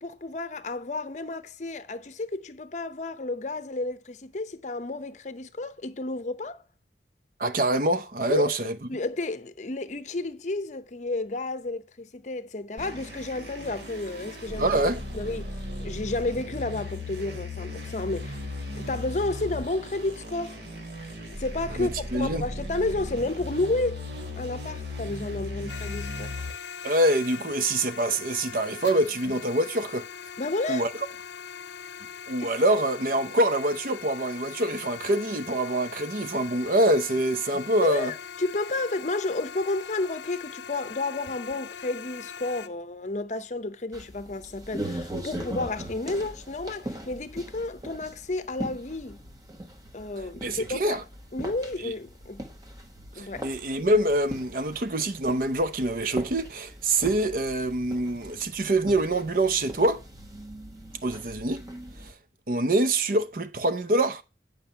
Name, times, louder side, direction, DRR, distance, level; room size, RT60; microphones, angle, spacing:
voice 1, 0.0-6.6 8.3-8.5 8.9-14.8 15.1-18.4 18.7-20.6 21.4-24.0 24.4-26.4 30.4-30.9 32.4-32.5 37.8-49.2 49.9-51.0 51.3-52.4 53.2-53.5, left 2 dB, 40° left, 0.7 m, -31 dB
voice 2, 7.4-8.7 14.6-15.0 21.7-22.4 26.8-30.0 30.7-30.9 32.3-38.1 50.4-51.0 51.8-51.9 53.2-60.0 61.0-61.6 62.5-64.2, right 1 dB, 50° right, 0.8 m, -25 dB
sound 1, 12.8-26.5, left 2 dB, 75° right, 2.6 m, -37 dB
sound 2, 25.7-42.7, left 7 dB, 85° left, 0.6 m, -41 dB
sound 3, 43.9-62.1, right 1 dB, 20° right, 1.3 m, -40 dB
9.1 x 5.2 x 5.5 m
head